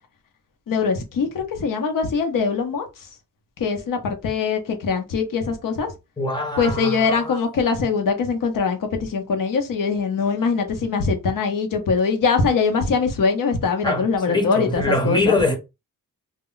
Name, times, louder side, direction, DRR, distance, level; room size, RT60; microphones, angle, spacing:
voice 1, 0.7-3.1 3.6-5.9 6.6-15.4, left 5 dB, 70° left, 0.8 m, -22 dB
voice 2, 6.2-7.4 13.8-15.6, left 2 dB, 15° left, 0.7 m, -23 dB
2.1 x 2.1 x 3.8 m
wide cardioid pair, 150°, 34 cm